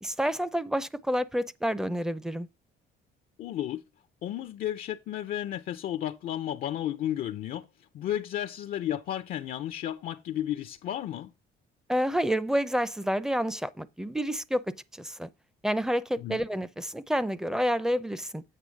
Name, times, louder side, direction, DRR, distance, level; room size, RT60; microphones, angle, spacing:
voice 1, 0.0-2.5 11.9-14.6 14.9-15.3 15.6-18.4, equal, 5° right, 0.5 m, -29 dB
voice 2, 3.4-3.8 4.2-11.3 16.2-16.4, left 11 dB, 60° left, 0.5 m, -33 dB
8.6 x 3.1 x 6.3 m
cardioid pair, 110°, 17 cm